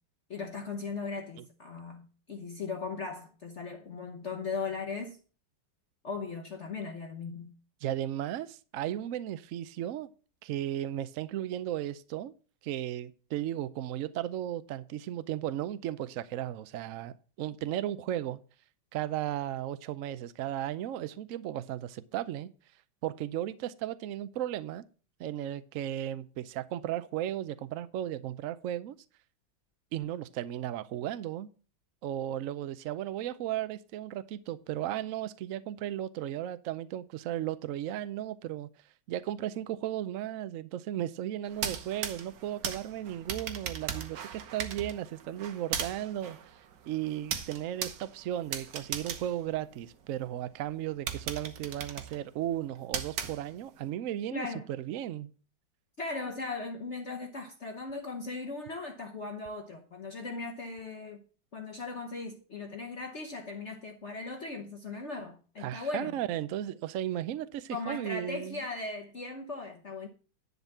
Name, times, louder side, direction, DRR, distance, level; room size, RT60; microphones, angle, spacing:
voice 1, 0.3-5.2 6.0-7.5 54.3-54.6 56.0-61.2 61.5-66.2 67.7-70.1, left 4 dB, 45° left, 1.1 m, -38 dB
voice 2, 7.8-10.1 10.4-12.3 12.6-18.4 18.9-22.5 23.0-24.8 25.2-29.0 29.9-31.5 32.0-38.7 39.1-46.5 46.9-55.3 65.6-68.6, right 12 dB, 85° right, 0.7 m, -35 dB
sound 1, 41.5-50.2 50.7-50.8 51.1-53.8, right 8 dB, 65° right, 1.5 m, -38 dB
10.5 x 4.1 x 7.2 m
omnidirectional pair, 2.1 m